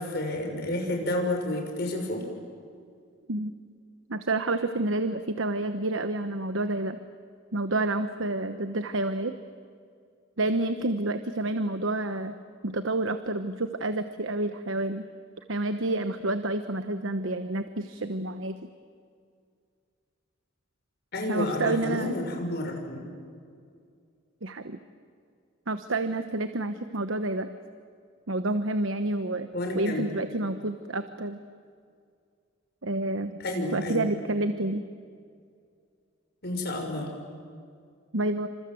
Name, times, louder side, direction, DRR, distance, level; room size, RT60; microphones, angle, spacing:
voice 1, 0.0-2.2 21.1-23.0 29.5-30.1 33.4-34.0 36.4-37.1, left 1 dB, 50° left, 3 dB, 6.3 m, -30 dB
voice 2, 4.1-7.0 7.5-9.4 10.4-12.3 12.6-15.0 15.5-18.6 21.3-22.1 24.4-24.8 25.7-27.5 28.3-29.5 29.7-31.4 32.8-33.4 33.7-34.9 38.1-38.5, right 2 dB, 70° right, 9 dB, 1.1 m, -29 dB
28.5 x 26.5 x 7.9 m, 2.3 s
head